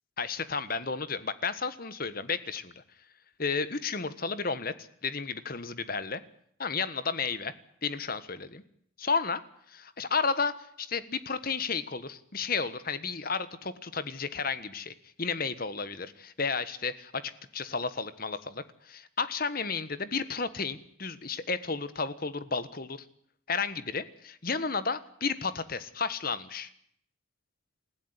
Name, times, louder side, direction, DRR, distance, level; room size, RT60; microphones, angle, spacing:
voice 1, 0.2-2.7 3.4-4.7 5.0-6.2 6.6-7.5 7.8-8.6 9.0-9.4 9.7-23.0 23.5-26.7, left 5 dB, 45° left, 13 dB, 1.4 m, -32 dB
28.0 x 15.5 x 9.8 m, 0.69 s
head